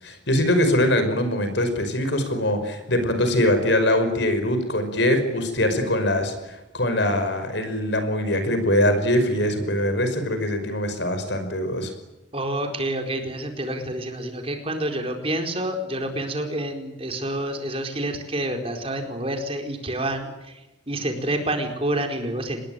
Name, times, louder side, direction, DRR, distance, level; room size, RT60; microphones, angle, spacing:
voice 1, 0.0-11.9, left 1 dB, 65° left, 8 dB, 5.5 m, -22 dB
voice 2, 12.3-20.6 20.9-22.6, right 1 dB, 30° right, 4 dB, 4.5 m, -28 dB
27.0 x 21.0 x 9.2 m, 1.0 s
head